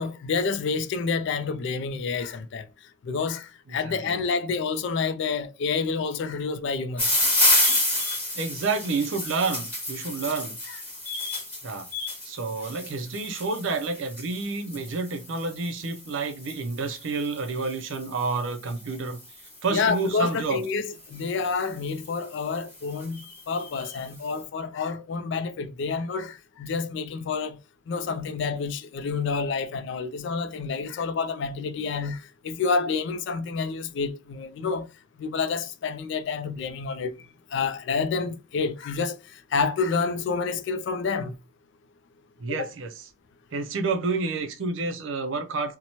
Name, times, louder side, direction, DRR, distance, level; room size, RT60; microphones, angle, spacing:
voice 1, 0.0-2.7 3.0-7.2 19.7-27.6 27.9-34.9 35.2-37.2 37.5-41.3 42.5-42.7, left 5 dB, 60° left, 0.3 m, -28 dB
voice 2, 3.7-4.2 8.4-10.6 11.6-11.9 12.3-19.2 19.6-20.6 42.4-42.9 43.5-45.8, right 4 dB, 65° right, 0.5 m, -29 dB
sound 1, 7.0-20.2 21.0-21.4 22.0-22.1 22.3-22.4 22.7-24.1, left 1 dB, 10° left, 1.3 m, -29 dB
2.7 x 2.1 x 2.8 m
head